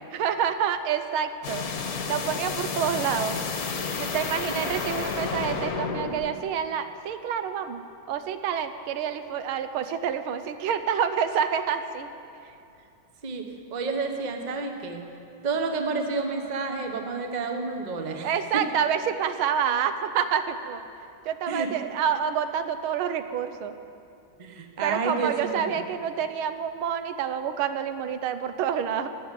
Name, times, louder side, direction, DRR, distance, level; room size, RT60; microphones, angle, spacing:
voice 1, 0.1-1.7 2.1-3.4 4.0-12.1 12.4-12.5 18.2-20.8 21.3-23.8 24.8-29.1, right 8 dB, 90° right, 10 dB, 1.6 m, -28 dB
sound 1, 1.4-6.3, left 5 dB, 55° left, 1.3 m, -31 dB
voice 2, 13.2-15.0 15.4-18.3 18.5-18.6 21.5-21.7 24.4-25.8, right 4 dB, 30° right, 4 dB, 0.8 m, -30 dB
14.5 x 7.6 x 9.7 m, 2.7 s
omnidirectional pair, 2.2 m